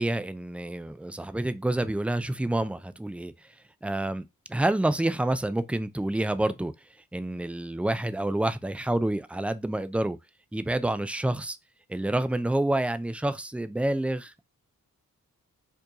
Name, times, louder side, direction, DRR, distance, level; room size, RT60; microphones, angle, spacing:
voice 1, 0.0-3.3 3.8-4.2 4.5-6.7 7.1-10.2 10.5-11.6 11.9-14.4, right 1 dB, 5° right, 0.4 m, -28 dB
4.5 x 2.6 x 2.9 m
cardioid pair, 55°, 36 cm